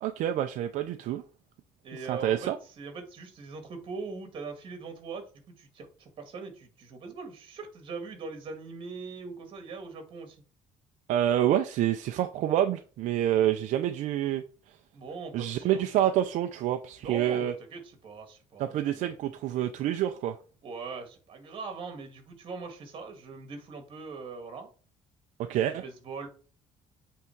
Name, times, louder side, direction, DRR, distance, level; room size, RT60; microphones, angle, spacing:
voice 1, 0.0-1.2 2.1-2.6 11.1-14.4 15.3-17.5 18.6-20.4 25.5-25.8, right 11 dB, 65° right, 0.6 m, -27 dB
voice 2, 1.8-10.4 14.9-15.9 17.0-19.1 20.6-24.7 25.5-26.3, right 4 dB, 40° right, 2.0 m, -41 dB
8.5 x 3.7 x 4.5 m
cardioid pair, 155°, 13 cm